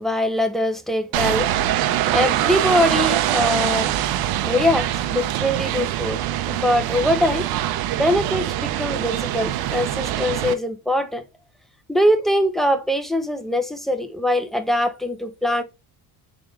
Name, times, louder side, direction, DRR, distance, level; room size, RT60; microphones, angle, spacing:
voice 1, 0.0-1.5 2.1-3.9 4.5-6.2 6.5-7.5 7.9-11.2 11.9-15.6, left 1 dB, ahead, 0.5 m, -22 dB
sound 1, 1.1-10.5, right 12 dB, 60° right, 0.5 m, -23 dB
3.6 x 3.0 x 3.1 m
cardioid pair, 105°, 41 cm